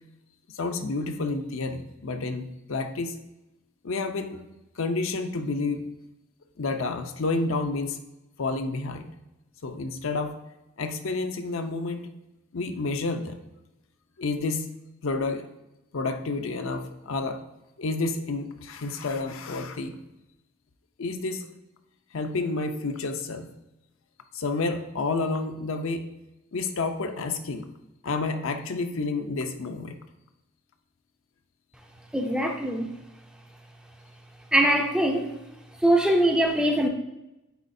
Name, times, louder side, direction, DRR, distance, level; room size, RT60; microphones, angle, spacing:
voice 1, 0.5-3.2 3.8-4.4 4.8-5.8 6.6-8.0 8.4-9.1 9.6-10.4 10.8-12.1 12.5-13.4 14.2-14.7 15.0-15.5 15.9-17.4 17.8-20.0 21.0-21.5 22.1-23.5 24.3-26.0 26.5-27.7 28.0-30.0, left 3 dB, 65° left, 7 dB, 0.6 m, -29 dB
voice 2, 32.1-32.9 34.5-35.3 35.8-36.9, right 1 dB, 5° right, 3 dB, 0.4 m, -22 dB
9.3 x 4.2 x 2.6 m, 0.96 s
head